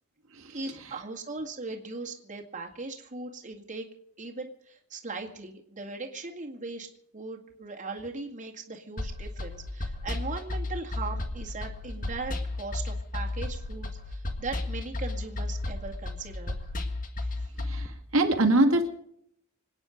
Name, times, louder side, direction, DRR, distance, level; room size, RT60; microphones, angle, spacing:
voice 1, 0.5-3.9 4.2-6.9 7.1-16.7 17.2-17.5, right 3 dB, 35° right, 1 dB, 2.2 m, -39 dB
sound 1, 9.0-17.9, left 2 dB, 40° left, 1.8 m, -34 dB
voice 2, 17.6-18.9, right 2 dB, 70° right, 3 dB, 2.1 m, -24 dB
26.5 x 9.7 x 5.2 m, 0.71 s
head